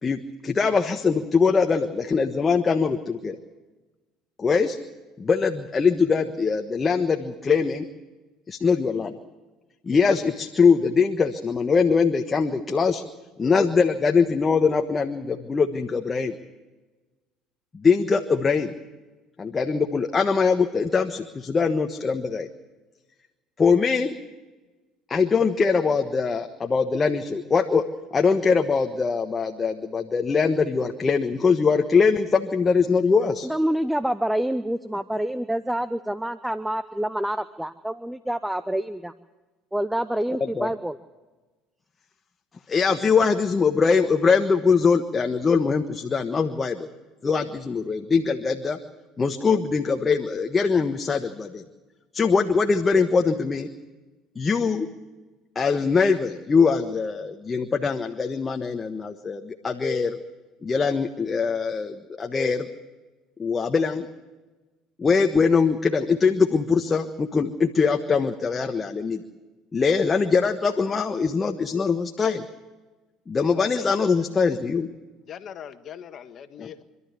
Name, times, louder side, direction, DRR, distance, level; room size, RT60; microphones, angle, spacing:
voice 1, 0.0-3.4 4.4-4.8 5.2-7.9 8.5-9.2 9.8-13.0 13.4-16.4 17.7-18.7 19.4-22.5 23.6-24.1 25.1-27.9 28.1-33.5 40.5-40.7 42.7-46.9 47.2-48.8 49.2-51.6 52.1-53.7 54.3-54.9 55.5-60.2 60.6-62.7 63.4-64.1 65.0-69.2 69.7-72.5 73.3-74.9 76.6-76.7, left 5 dB, 30° left, 5 dB, 1.4 m, -22 dB
voice 2, 33.4-39.1 39.7-41.0, right 1 dB, 5° right, 13 dB, 0.8 m, -27 dB
voice 3, 75.3-76.8, left 9 dB, 50° left, 9 dB, 1.6 m, -40 dB
26.5 x 12.5 x 8.3 m, 1.2 s
hypercardioid pair, 75°, 0 cm